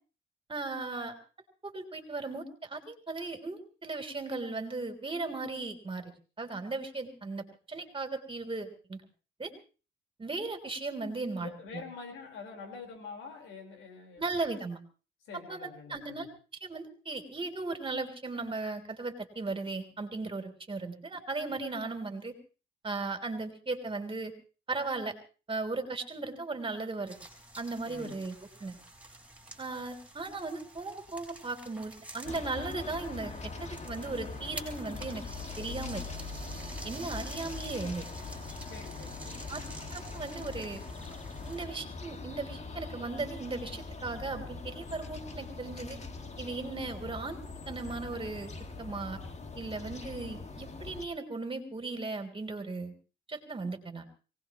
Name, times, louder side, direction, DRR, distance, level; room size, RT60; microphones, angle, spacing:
voice 1, 0.5-1.2 1.6-6.0 6.4-9.0 9.4-9.5 10.2-11.5 14.2-14.8 15.5-15.6 15.9-16.3 16.6-22.4 22.8-24.3 24.7-25.1 25.5-27.2 27.6-28.3 28.6-28.8 29.6-35.2 35.6-36.0 36.8-38.1 39.5-39.6 39.9-40.8 41.4-46.0 46.4-47.4 47.7-48.5 48.8-49.2 49.6-52.9 53.3-54.1, right 3 dB, 25° right, 6 dB, 3.5 m, -37 dB
voice 2, 11.4-14.4 15.3-16.3 27.9-28.2 38.7-39.8, left 4 dB, 85° left, 4 dB, 4.4 m, -46 dB
sound 1, 27.1-41.7, right 2 dB, 5° right, 5.2 m, -49 dB
sound 2, 32.2-51.0, left 4 dB, 35° left, 2.0 m, -42 dB
23.5 x 18.5 x 3.1 m, 0.36 s
cardioid pair, 90°, 20 cm